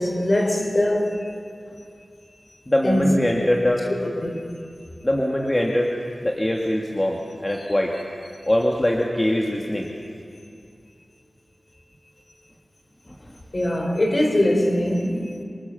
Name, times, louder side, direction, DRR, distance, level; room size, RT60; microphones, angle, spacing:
voice 1, 0.0-1.3 2.8-3.4 4.0-4.5 7.5-8.0 10.4-10.5 13.5-15.4, left 1 dB, 45° left, 4.0 m, -23 dB
voice 2, 2.7-3.8 5.0-5.9 6.2-7.9 8.5-9.9, left 1 dB, 25° left, 2.3 m, -22 dB
26.5 x 19.5 x 7.2 m
cardioid pair, 45°, 0 cm